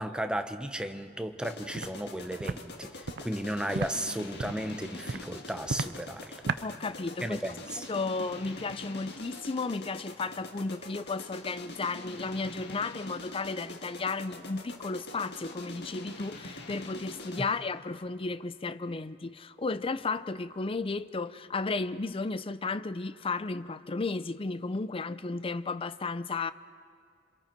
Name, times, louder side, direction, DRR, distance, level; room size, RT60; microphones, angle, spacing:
voice 1, 0.0-6.4 7.2-7.9, right 1 dB, 5° right, 0.9 m, -35 dB
sound 1, 1.4-17.6, left 2 dB, 60° left, 1.8 m, -44 dB
Walk footsteps, 1.8-1.9 2.4-2.6 3.0-3.2 3.7-3.9 4.4-4.6 5.1-5.2 5.7-5.9 6.5-6.6, right 4 dB, 60° right, 0.6 m, -32 dB
voice 2, 6.6-7.4 7.9-26.5, left 3 dB, 30° left, 0.5 m, -34 dB
27.0 x 25.5 x 4.5 m
head